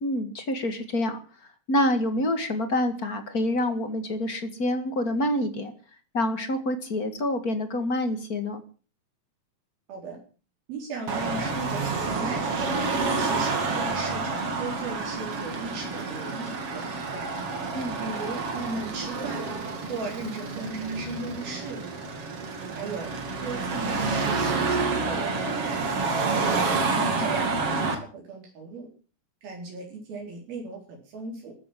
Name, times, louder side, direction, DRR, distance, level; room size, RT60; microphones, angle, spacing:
voice 1, 0.0-1.2 1.7-5.7 6.1-8.6 17.7-18.0 27.2-27.3, left 1 dB, 35° left, 9 dB, 1.6 m, -27 dB
voice 2, 10.7-12.7 13.2-17.3 18.0-19.4 19.9-21.9 22.7-23.1 23.4-26.5 27.2-28.9 29.4-31.5, right 3 dB, 80° right, 0 dB, 6.0 m, -37 dB
Car passing by / Traffic noise roadway noise / Engine, 11.1-28.0, right 4 dB, 40° right, 3.3 m, -28 dB
14.5 x 13.0 x 7.5 m, 0.39 s
omnidirectional pair, 4.2 m